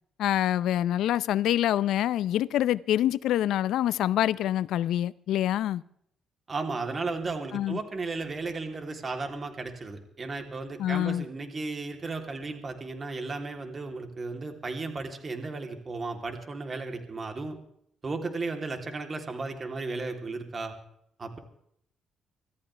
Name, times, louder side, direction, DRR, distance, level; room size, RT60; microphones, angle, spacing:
voice 1, 0.2-5.8 7.5-7.8 10.8-11.2, left 12 dB, 80° left, 0.6 m, -26 dB
voice 2, 6.5-17.6 18.0-20.7 21.2-21.4, right 3 dB, 35° right, 3.2 m, -34 dB
25.5 x 14.0 x 3.4 m
cardioid pair, 90°, 0 cm